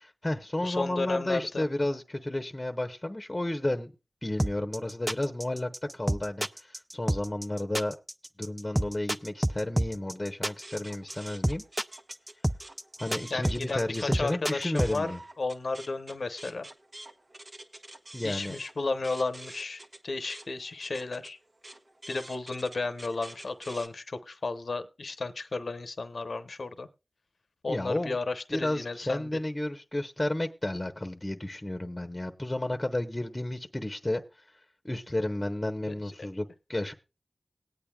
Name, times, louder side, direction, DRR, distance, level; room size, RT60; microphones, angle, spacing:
voice 1, 0.0-3.9 4.2-7.9 8.4-11.6 13.0-15.2 18.1-18.6 27.7-28.2 28.5-34.2 34.8-36.4 36.7-36.9, left 1 dB, 25° left, 0.9 m, -32 dB
voice 2, 0.6-1.6 13.3-15.1 15.4-16.7 18.2-21.4 22.1-26.9 27.6-29.3 35.9-36.0, left 3 dB, 75° left, 0.8 m, -33 dB
sound 1, 4.4-15.0, right 1 dB, 10° right, 0.5 m, -29 dB
sound 2, 10.5-14.1 14.5-23.9, right 1 dB, 50° right, 1.1 m, -48 dB
19.5 x 8.7 x 2.3 m
cardioid pair, 40°, 0 cm